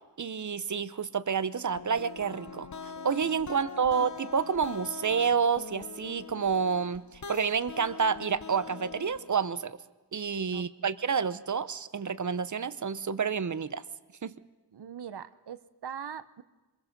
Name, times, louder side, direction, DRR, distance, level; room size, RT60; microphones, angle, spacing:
voice 1, 0.2-9.8 10.1-13.8 14.2-14.3, right 6 dB, 45° right, 15 dB, 0.9 m, -29 dB
sound 1, 1.8-9.4, left 5 dB, 45° left, 0.9 m, -43 dB
voice 2, 3.5-4.0 10.5-10.9 14.7-16.4, right 8 dB, 70° right, 14 dB, 1.0 m, -42 dB
25.5 x 21.5 x 5.4 m, 1.2 s
wide cardioid pair, 115°, 42 cm